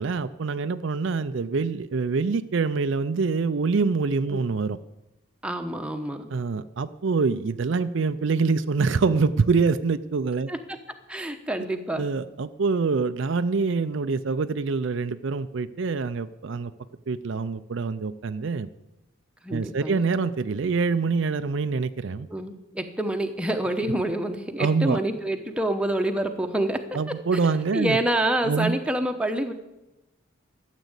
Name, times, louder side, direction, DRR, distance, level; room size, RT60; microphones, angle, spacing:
voice 1, 0.0-4.8 6.3-10.5 12.0-16.7 17.1-18.7 19.5-22.3 23.9-24.0 24.6-25.0 26.9-28.0 28.4-28.8, right 4 dB, 60° right, 12 dB, 0.5 m, -25 dB
voice 2, 5.4-6.3 10.5-10.8 11.1-12.1 19.4-20.1 22.3-26.8 27.3-29.5, right 1 dB, 5° right, 5 dB, 0.9 m, -27 dB
13.0 x 8.2 x 8.1 m, 0.97 s
head